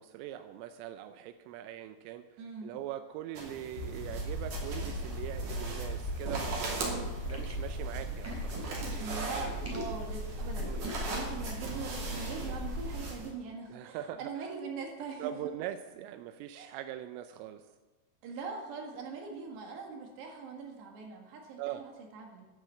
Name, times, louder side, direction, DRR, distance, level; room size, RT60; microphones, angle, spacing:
voice 1, 0.0-9.1 10.6-10.8 13.7-14.5 15.2-17.7 21.6-21.9, right 11 dB, 85° right, 9 dB, 3.2 m, -42 dB
voice 2, 2.4-2.7 6.8-7.1 9.0-15.4 16.5-16.8 18.2-22.5, right 5 dB, 65° right, 1 dB, 3.7 m, -42 dB
sound 1, 3.4-13.3, right 3 dB, 45° right, 3.7 m, -41 dB
sound 2, 3.8-13.1, equal, 35° left, 2.8 m, -38 dB
sound 3, 7.0-11.8, equal, 5° right, 2.5 m, -44 dB
11.5 x 9.4 x 7.5 m, 1.3 s
omnidirectional pair, 5.7 m